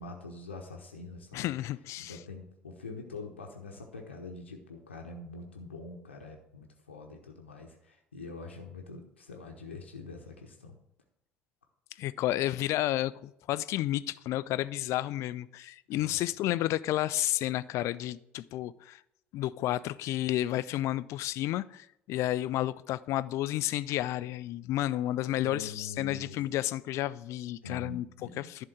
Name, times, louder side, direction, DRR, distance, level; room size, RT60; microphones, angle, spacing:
voice 1, 0.0-1.6 2.0-10.8 15.9-16.2 25.4-26.4 27.6-28.5, left 3 dB, 80° left, 0.9 m, -44 dB
voice 2, 1.3-2.2 12.0-19.0 19.3-28.1 28.4-28.6, left 14 dB, 50° left, 0.4 m, -31 dB
11.0 x 3.7 x 7.4 m
figure-of-eight pair, 60°, 6 cm